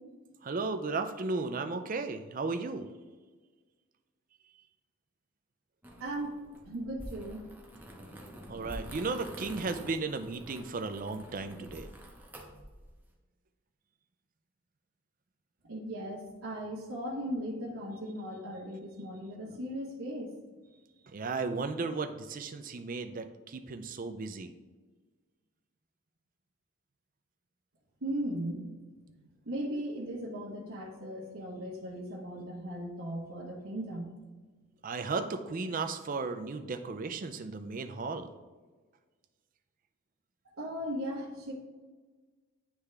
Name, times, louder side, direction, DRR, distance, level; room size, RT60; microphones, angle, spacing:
voice 1, 0.4-2.9 8.5-11.9 21.0-24.5 34.8-38.3, right 3 dB, 40° right, 8 dB, 0.4 m, -35 dB
sound 1, 5.8-13.0, equal, 10° right, 0.7 m, -47 dB
voice 2, 6.0-6.4 6.6-7.4 15.6-20.3 28.0-28.8 29.5-34.1 40.6-41.5, equal, 80° right, -5 dB, 1.0 m, -37 dB
9.7 x 3.5 x 3.3 m, 1.3 s
head